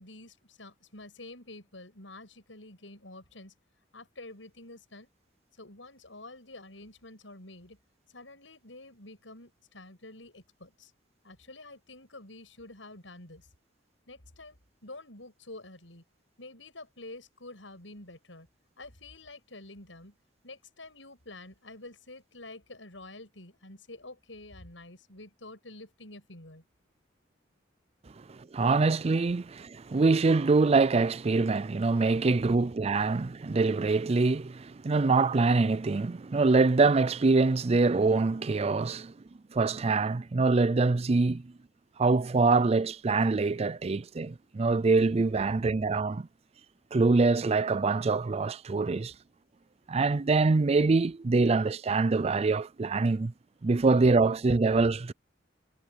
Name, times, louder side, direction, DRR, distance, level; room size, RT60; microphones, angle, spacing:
voice 1, 0.0-3.5 3.9-5.1 5.6-7.8 8.1-10.9 11.2-13.5 14.1-16.0 16.4-18.5 18.8-20.1 20.4-26.6, left 2 dB, 85° left, 8.0 m, -48 dB
voice 2, 28.5-39.1 39.5-41.4 42.0-46.2 46.9-49.1 49.9-53.3 53.6-55.1, right 3 dB, 35° right, 0.4 m, -24 dB
head